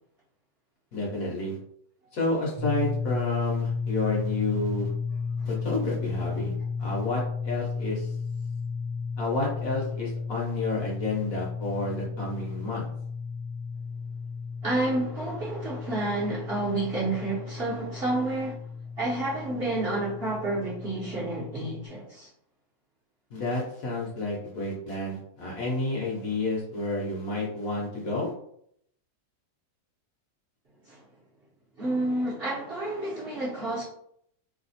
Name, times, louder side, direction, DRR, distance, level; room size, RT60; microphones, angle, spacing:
voice 1, 0.9-1.6 2.1-4.9 5.4-6.5 6.8-8.1 9.2-12.9 23.3-28.3, left 2 dB, 55° left, 1.2 m, -30 dB
sound 1, 2.6-21.9, left 5 dB, 70° right, 1.2 m, -34 dB
voice 2, 14.6-18.6 19.0-22.3 30.9-31.0 31.8-33.8, right 2 dB, 40° right, 1.0 m, -30 dB
3.2 x 2.3 x 4.1 m
omnidirectional pair, 1.9 m